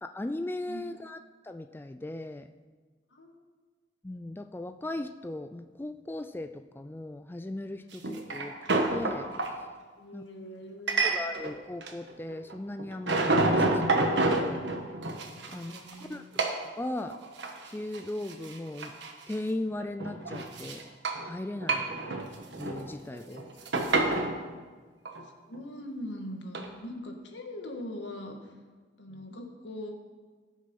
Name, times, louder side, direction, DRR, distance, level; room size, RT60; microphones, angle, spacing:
voice 1, 0.0-2.5 4.0-8.5 8.9-9.3 10.1-10.3 11.0-14.6 15.5-16.4 16.8-17.2 17.7-18.9 19.3-20.8 21.2-22.2 22.6-23.5 24.0-24.1 29.1-29.2, left 1 dB, 10° left, 8 dB, 0.3 m, -38 dB
sound 1, 7.9-9.5 10.9-11.5 11.8-12.5 12.8-16.0 16.4-16.6 17.1-17.7 17.9-18.0 18.3-19.3 19.8-21.3 21.6-22.8 23.1-24.3 25.1-25.2 26.5-26.7, right 2 dB, 70° right, 1.4 m, -28 dB
voice 2, 10.0-11.1 15.4-16.3 23.1-23.4 25.2-28.5 29.0-29.9, left 1 dB, 85° left, 3 dB, 1.7 m, -42 dB
18.0 x 6.3 x 5.4 m, 1.4 s
head